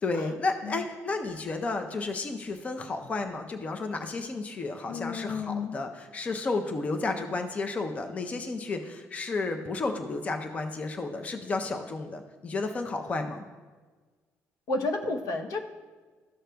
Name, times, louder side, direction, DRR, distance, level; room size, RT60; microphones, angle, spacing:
voice 1, 0.0-13.4, left 3 dB, 25° left, 5 dB, 0.5 m, -32 dB
voice 2, 4.9-5.8 14.7-15.6, left 3 dB, 85° left, 3 dB, 0.8 m, -31 dB
13.5 x 6.4 x 2.3 m, 1.4 s
cardioid pair, 160°, 5 cm